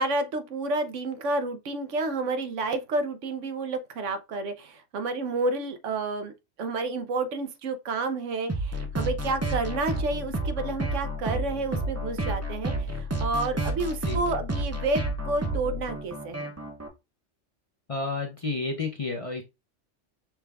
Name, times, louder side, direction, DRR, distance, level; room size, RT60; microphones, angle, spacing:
voice 1, 0.0-6.3 6.6-16.6, right 2 dB, 75° right, 1.0 m, -30 dB
sound 1, 8.5-16.9, right 1 dB, 15° right, 0.5 m, -30 dB
voice 2, 17.9-19.4, left 3 dB, 35° left, 0.6 m, -31 dB
5.9 x 2.3 x 3.3 m
omnidirectional pair, 1.3 m